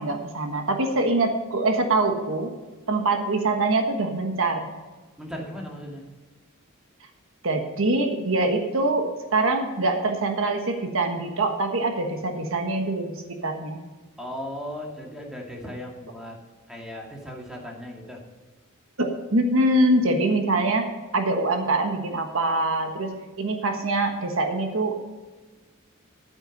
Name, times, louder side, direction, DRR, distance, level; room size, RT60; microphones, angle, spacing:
voice 1, 0.0-2.5 2.9-4.7 7.4-13.8 19.0-20.8 21.1-24.9, right 2 dB, 65° right, 4 dB, 1.4 m, -24 dB
voice 2, 5.2-6.0 14.2-16.4 16.7-18.2, equal, 5° right, -1 dB, 2.2 m, -37 dB
11.5 x 8.8 x 5.3 m, 1.3 s
head